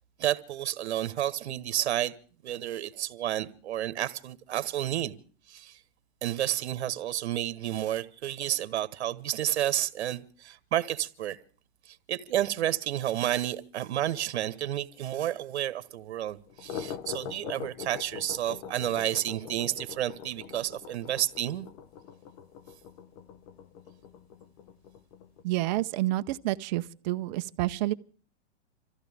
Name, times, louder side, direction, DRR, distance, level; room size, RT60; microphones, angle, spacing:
voice 1, 0.2-2.1 2.4-5.2 5.5-5.8 6.2-11.4 11.9-21.7, right 12 dB, 80° right, 1.3 m, -31 dB
sound 1, 16.4-25.4, left 7 dB, 45° left, 1.0 m, -43 dB
voice 2, 25.4-27.9, right 17 dB, 40° right, 0.8 m, -29 dB
26.5 x 15.0 x 3.6 m
supercardioid pair, 155°, 33 cm